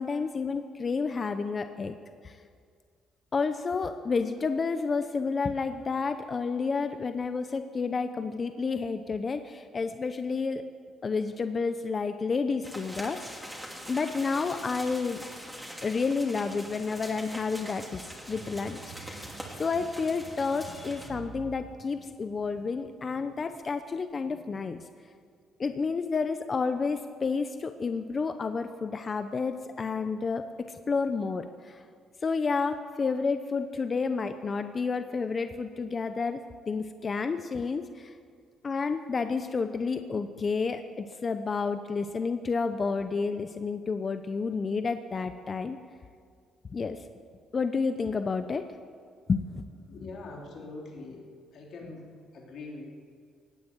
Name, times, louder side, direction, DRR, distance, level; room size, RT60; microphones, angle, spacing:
voice 1, 0.0-2.0 2.2-2.4 3.3-10.6 11.0-13.4 13.9-15.2 15.8-19.3 19.6-24.9 25.6-31.8 32.2-38.2 38.6-45.8 46.7-47.0 47.5-48.7 49.3-49.7, left 4 dB, 35° left, 9 dB, 0.7 m, -30 dB
sound 1, 12.6-21.1, equal, ahead, 2.8 m, -43 dB
sound 2, 18.3-22.9, right 7 dB, 55° right, 0.8 m, -48 dB
voice 2, 49.9-51.2 51.5-52.8, left 3 dB, 60° left, -1 dB, 3.2 m, -43 dB
17.5 x 9.6 x 7.9 m, 2.1 s
cardioid pair, 90°, 0 cm